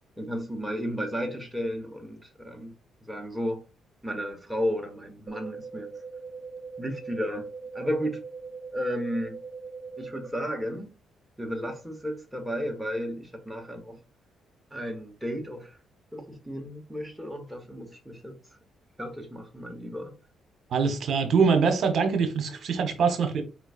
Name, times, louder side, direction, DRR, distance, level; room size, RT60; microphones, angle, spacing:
voice 1, 0.2-2.7 3.1-3.6 4.0-5.9 6.8-8.2 8.7-9.4 10.0-10.9 11.4-14.0 14.7-15.8 16.1-18.4 19.0-20.1, equal, 5° right, 1.0 m, -33 dB
sound 1, 5.3-10.3, right 4 dB, 40° right, 1.4 m, -41 dB
voice 2, 20.7-23.4, right 5 dB, 60° right, 1.0 m, -23 dB
4.5 x 3.9 x 2.4 m
cardioid pair, 90°, 0 cm